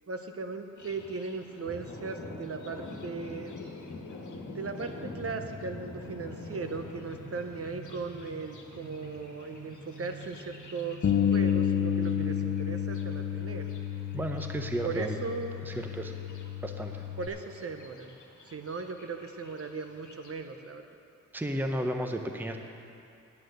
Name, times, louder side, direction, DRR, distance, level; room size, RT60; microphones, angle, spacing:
voice 1, 0.1-3.5 4.5-13.7 14.8-15.6 17.2-18.2 18.4-21.0, right 4 dB, 50° right, 6 dB, 0.8 m, -38 dB
Thunder, 0.8-20.3, left 2 dB, 75° left, 1.4 m, -47 dB
sound 1, 5.2-13.1, right 3 dB, 30° right, 1.4 m, -50 dB
Bass guitar, 11.0-17.3, left 8 dB, 50° left, 0.7 m, -30 dB
voice 2, 14.1-15.2 15.6-16.1 16.6-17.0 21.3-22.6, right 1 dB, 5° right, 4 dB, 0.7 m, -33 dB
9.6 x 8.8 x 6.6 m, 2.6 s
wide cardioid pair, 105°, 30 cm